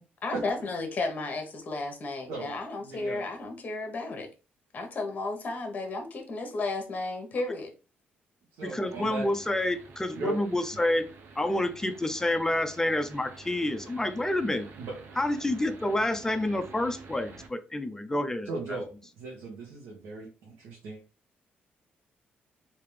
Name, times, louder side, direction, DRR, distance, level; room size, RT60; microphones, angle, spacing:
voice 1, 0.2-4.3 4.7-7.7, left 3 dB, 40° left, 1.1 m, -33 dB
voice 2, 2.8-3.2 8.6-9.3 10.1-10.4 14.8-14.9 18.5-18.8 19.2-21.0, right 3 dB, 90° right, 1.2 m, -37 dB
voice 3, 8.6-11.0 11.4-14.7 15.2-18.8, left 1 dB, 15° left, 0.5 m, -28 dB
sound 1, 8.9-17.5, right 4 dB, 60° right, 0.7 m, -49 dB
3.4 x 2.8 x 3.3 m
cardioid pair, 95°, 4 cm